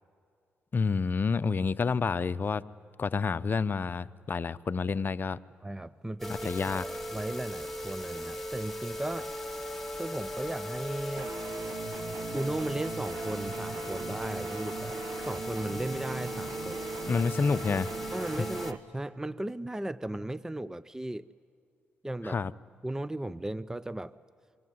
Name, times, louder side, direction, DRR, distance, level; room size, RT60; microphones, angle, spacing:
voice 1, 0.7-2.6 3.0-5.4 6.4-6.9 17.1-17.9 22.2-22.5, left 5 dB, 45° left, 15 dB, 0.7 m, -29 dB
voice 2, 5.6-9.3 10.0-11.3 12.3-16.8 18.1-21.3 22.0-22.4 22.8-24.2, right 1 dB, 10° right, 18 dB, 0.6 m, -36 dB
sound 1, 6.2-18.7, equal, 5° left, 2.6 m, -38 dB
sound 2, 11.2-18.8, right 7 dB, 65° right, 0.9 m, -41 dB
26.5 x 23.0 x 9.5 m, 2.4 s
supercardioid pair, 55°, 5 cm